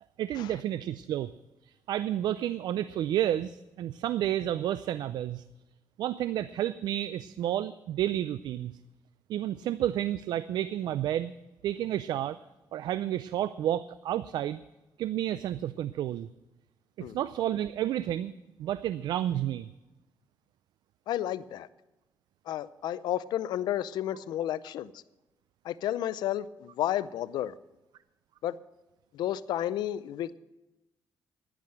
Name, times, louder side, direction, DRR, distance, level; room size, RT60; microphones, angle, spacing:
voice 1, 0.2-1.3 1.6-5.4 6.0-8.7 9.3-11.3 11.6-12.4 12.7-14.6 15.0-16.3 17.0-18.3 18.6-19.7, right 12 dB, 80° right, 15 dB, 0.4 m, -30 dB
voice 2, 21.1-21.7 22.5-25.0 25.6-27.5 28.4-28.6 29.1-30.3, left 12 dB, 85° left, 17 dB, 0.5 m, -32 dB
11.0 x 10.5 x 7.7 m, 1.1 s
cardioid pair, 90°, 7 cm